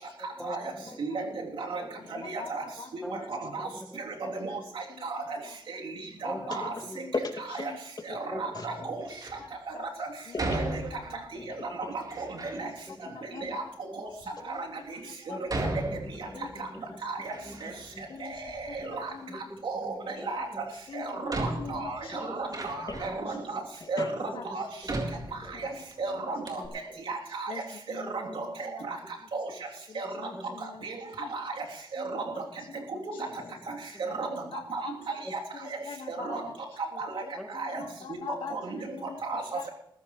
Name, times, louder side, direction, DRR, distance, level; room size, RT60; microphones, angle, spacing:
voice 1, 0.4-1.4 1.8-2.0 3.0-3.2 3.6-4.7 6.2-6.4 6.8-7.1 8.3-8.6 12.9-13.1 15.3-16.4 16.7-16.8 17.4-17.6 17.9-18.1 19.3-20.7 22.2-22.7 23.0-23.6 24.5-24.6 25.4-25.7 26.6-27.0 27.9-28.4 30.0-30.6 32.9-33.0 35.2-35.3 37.3-37.5 39.0-39.1, equal, ahead, 1 dB, 2.9 m, -44 dB
voice 2, 1.0-1.3 1.6-1.8 2.2-2.6 2.9-3.7 4.4-4.5 5.0-5.2 6.2-6.7 8.1-9.0 9.7-9.8 10.0-10.1 10.5-10.6 11.9-12.3 12.6-12.7 13.5-13.6 14.0-14.1 14.5-14.6 14.9-15.0 16.6-16.7 17.0-17.2 17.6-17.7 18.2-19.1 19.6-20.4 20.9-22.0 22.3-23.3 23.9-24.1 24.5-24.6 24.9-25.0 25.6-25.7 26.0-26.6 27.1-27.5 27.9-28.4 28.9-29.0 29.3-29.5 29.9-30.1 30.8-30.9 31.3-31.5 31.9-32.2 33.1-33.2 34.0-34.3 34.7-34.9 36.1-36.4 37.0-37.2 37.5-37.8 38.5-38.8 39.2-39.4, right 3 dB, 80° right, -1 dB, 3.4 m, -34 dB
voice 3, 2.2-2.5 2.8-2.9 4.5-4.6 5.0-5.1 9.4-9.5 9.7-9.8 13.1-13.6 14.5-14.6 15.3-15.7 16.3-16.5 18.1-18.3 18.8-19.4 20.9-21.3 21.6-22.3 24.3-24.4 25.6-25.8 27.5-27.6 27.9-28.5 29.9-30.8 31.2-31.3 32.0-32.1 33.1-33.2 33.8-33.9 34.5-34.9 35.5-36.5 37.8-38.5 38.9-39.2 39.5-39.6, left 6 dB, 80° left, 2 dB, 1.8 m, -42 dB
voice 4, 6.5-6.9 7.1-7.7 8.0-9.0 10.3-10.8 11.3-11.9 22.5-23.1 23.8-24.1 33.3-33.7, left 3 dB, 50° left, 3 dB, 2.6 m, -38 dB
Door, 9.0-9.5 10.4-11.3 12.0-12.6 13.4-13.5 14.2-14.3 15.5-16.6 17.0-18.0 18.3-19.2 20.5-20.6 21.3-23.3 23.9-24.0 24.8-25.9 26.2-26.3 26.5-26.7, right 2 dB, 45° right, 4.0 m, -36 dB
20.0 x 15.5 x 3.3 m, 0.80 s
cardioid pair, 75°, 9 cm